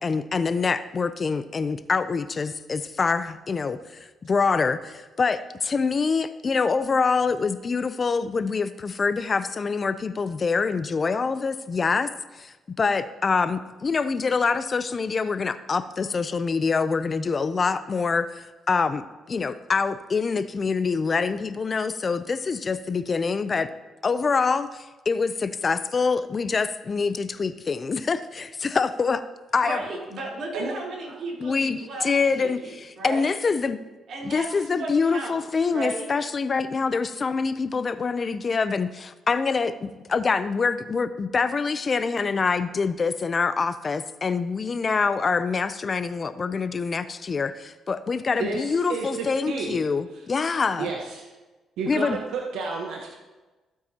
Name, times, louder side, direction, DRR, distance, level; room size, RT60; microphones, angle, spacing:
voice 1, 0.0-12.1 12.4-23.7 24.0-29.2 29.5-29.8 31.4-33.8 34.2-50.9 51.9-52.2, left 4 dB, 35° left, 13 dB, 0.5 m, -25 dB
voice 2, 29.6-32.1 32.4-33.3 34.1-35.4 35.7-36.1, right 2 dB, 70° right, -4 dB, 3.6 m, -34 dB
voice 3, 48.4-49.8 50.8-51.3 51.8-53.1, right 4 dB, 85° right, 0 dB, 1.1 m, -31 dB
15.0 x 8.5 x 2.9 m, 1.2 s
cardioid pair, 90°, 0 cm